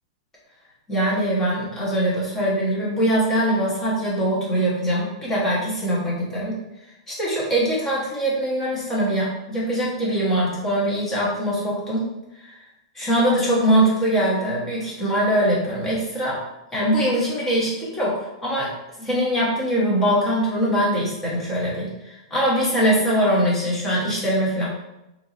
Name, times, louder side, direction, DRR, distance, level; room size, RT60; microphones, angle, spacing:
voice 1, 0.9-6.6 7.1-12.1 12.4-12.5 12.9-16.4 16.7-18.7 19.0-24.7, right 1 dB, 10° left, -6 dB, 1.2 m, -22 dB
4.5 x 3.0 x 2.7 m, 0.91 s
supercardioid pair, 165°, 3 cm